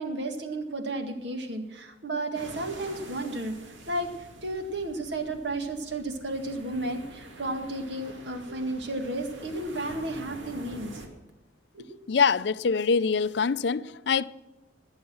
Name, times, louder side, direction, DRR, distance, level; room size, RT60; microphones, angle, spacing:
voice 1, 0.0-3.6 3.9-11.0 11.7-12.0, right 2 dB, 65° right, 1.9 m, -33 dB
sound 1, 2.3-11.1, right 1 dB, 90° right, 2.3 m, -46 dB
voice 2, 12.1-14.3, left 5 dB, 65° left, 0.5 m, -24 dB
20.5 x 7.4 x 6.2 m
head